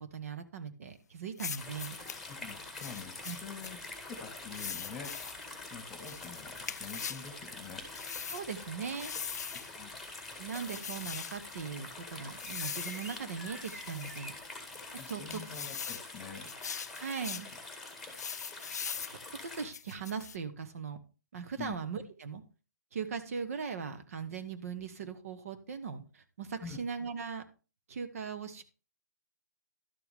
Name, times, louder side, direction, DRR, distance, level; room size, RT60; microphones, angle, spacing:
voice 1, 0.1-2.0 3.2-3.4 8.3-9.1 10.3-14.3 15.1-15.4 17.0-17.5 19.1-21.0 21.3-22.4 22.9-27.4 27.9-28.6, right 6 dB, 55° right, 9 dB, 1.1 m, -39 dB
sound 1, 1.4-2.2 2.8-3.7 4.5-5.4 6.1-7.3 8.0-8.5 9.0-9.7 10.5-11.4 12.4-13.2 13.6-14.2 14.8-16.1 16.5-17.5 18.1-19.2 19.7-20.4, left 7 dB, 70° left, 0.4 m, -41 dB
sound 2, 1.6-19.7, left 3 dB, ahead, 1.9 m, -46 dB
voice 2, 2.3-3.8 4.1-5.1 5.7-7.8 9.7-9.9 14.9-16.5 21.6-21.7 26.6-26.8, left 5 dB, 15° left, 8 dB, 1.6 m, -46 dB
sound 3, 12.1-14.7, right 1 dB, 70° right, 2.4 m, -49 dB
12.0 x 7.0 x 3.5 m, 0.34 s
figure-of-eight pair, 135°, 9 cm